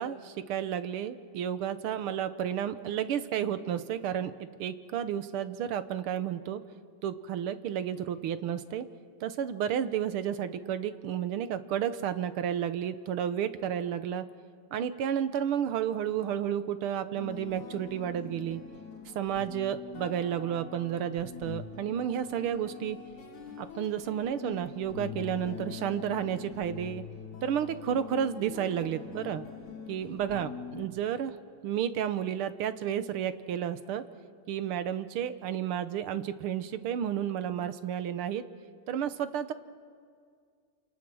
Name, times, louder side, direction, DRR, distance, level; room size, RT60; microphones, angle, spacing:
voice 1, 0.0-4.3 4.6-6.6 7.0-8.9 9.2-14.3 14.7-18.6 19.2-23.0 23.6-27.0 27.4-29.4 29.9-31.4 31.6-34.0 34.5-38.4 38.9-39.5, right 9 dB, 85° right, 12 dB, 1.8 m, -31 dB
sound 1, 17.1-30.8, left 7 dB, 85° left, 3.4 m, -44 dB
28.5 x 28.0 x 6.2 m, 2.1 s
omnidirectional pair, 2.3 m